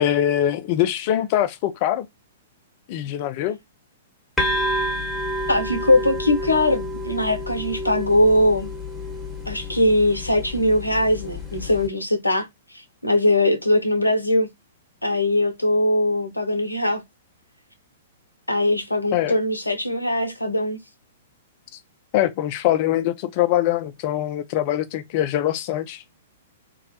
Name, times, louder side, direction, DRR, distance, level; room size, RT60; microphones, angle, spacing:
voice 1, 0.0-2.1 2.9-3.6 19.1-19.4 22.1-26.0, left 12 dB, 40° left, 0.4 m, -23 dB
sound 1, 4.4-11.9, left 1 dB, 5° left, 0.9 m, -29 dB
voice 2, 5.5-8.7 9.5-12.5 13.0-14.5 15.0-17.0 18.5-20.8, left 1 dB, 90° left, 0.6 m, -21 dB
2.3 x 2.1 x 2.6 m
figure-of-eight pair, 110°, 0 cm